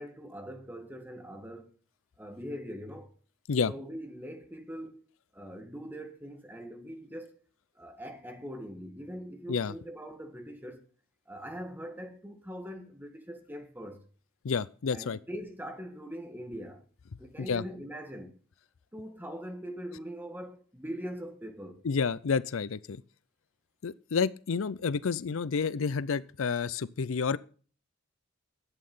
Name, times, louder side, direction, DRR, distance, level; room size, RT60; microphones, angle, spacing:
voice 1, 0.0-1.7 2.2-3.1 3.7-5.0 5.3-7.3 7.7-10.8 11.3-14.0 14.9-16.9 17.2-18.4 18.9-21.8, equal, 10° right, 1.8 m, -42 dB
voice 2, 14.4-15.2 17.4-17.6 21.8-23.0 23.8-27.4, left 5 dB, 75° left, 0.5 m, -30 dB
11.0 x 8.6 x 5.5 m
head